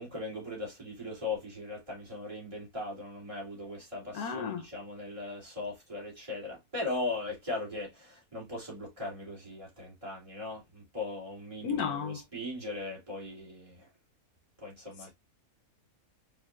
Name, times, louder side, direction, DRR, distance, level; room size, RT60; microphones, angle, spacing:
voice 1, 0.0-13.9 14.6-15.1, left 2 dB, 20° right, 2.9 m, -39 dB
voice 2, 4.1-4.6 11.6-12.2, left 6 dB, 80° left, 1.3 m, -33 dB
4.8 x 4.4 x 2.4 m
omnidirectional pair, 1.6 m